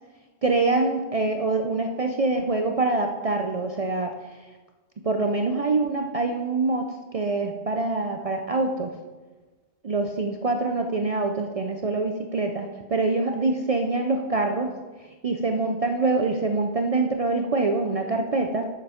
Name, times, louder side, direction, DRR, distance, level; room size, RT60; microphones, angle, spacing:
voice 1, 0.4-4.1 5.0-8.9 9.8-14.7 15.2-18.7, right 3 dB, 45° right, 4 dB, 0.5 m, -25 dB
7.0 x 6.7 x 5.0 m, 1.2 s
omnidirectional pair, 1.2 m